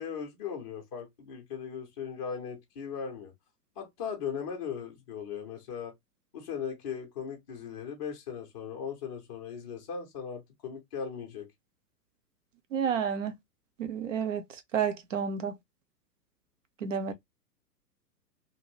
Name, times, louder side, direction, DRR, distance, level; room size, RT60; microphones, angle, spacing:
voice 1, 0.0-3.3 3.8-5.9 6.3-11.5, left 7 dB, 20° left, 0.5 m, -38 dB
voice 2, 12.7-13.4 13.8-14.4 14.7-15.5 16.8-17.1, right 7 dB, 50° right, 0.6 m, -30 dB
2.6 x 2.4 x 2.9 m
figure-of-eight pair, 110°, 49 cm